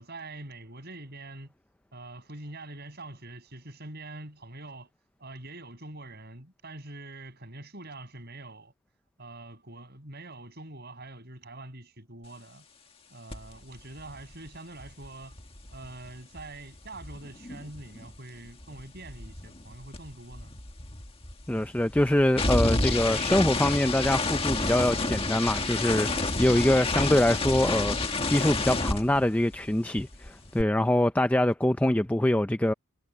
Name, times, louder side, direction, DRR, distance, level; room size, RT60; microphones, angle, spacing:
voice 1, 0.0-1.5 1.9-4.9 5.2-8.7 9.2-12.7 13.1-15.4 15.7-20.5, right 2 dB, 45° right, 6.3 m, -44 dB
sound 1, 13.3-13.5 13.8-18.2 18.4-29.7 30.0-30.6, left 2 dB, 25° left, 1.8 m, -30 dB
voice 2, 21.5-32.7, left 1 dB, 5° left, 0.4 m, -24 dB
head